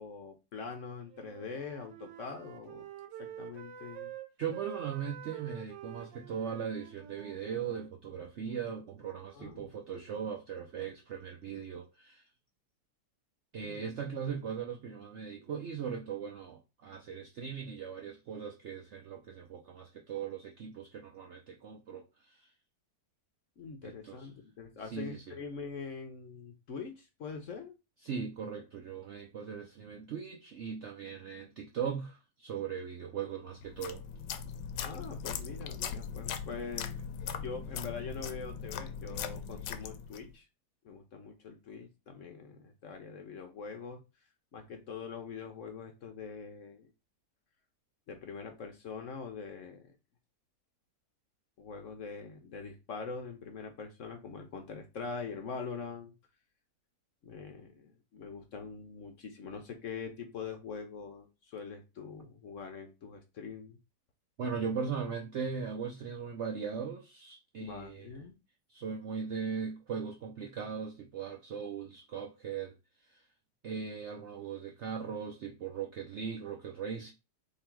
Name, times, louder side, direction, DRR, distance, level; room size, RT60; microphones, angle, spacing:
voice 1, 0.0-2.9 3.2-4.1 9.3-9.7 13.6-13.9 23.6-27.7 34.8-36.9 37.4-40.5 40.8-44.0 44.5-46.9 48.1-49.9 51.6-56.1 57.2-63.8 67.6-68.4, left 5 dB, 60° left, 0.9 m, -43 dB
Wind instrument woodwind instrument, 1.1-7.9, right 10 dB, 90° right, 1.3 m, -47 dB
voice 2, 4.4-12.3 13.5-22.5 23.8-24.3 24.9-25.4 28.0-34.0 64.4-68.1 68.7-72.7 73.0-73.2 73.6-77.1, right 6 dB, 70° right, 0.6 m, -39 dB
sound 1, 33.6-40.3, left 7 dB, 85° left, 1.2 m, -40 dB
3.7 x 2.9 x 4.5 m
omnidirectional pair, 1.9 m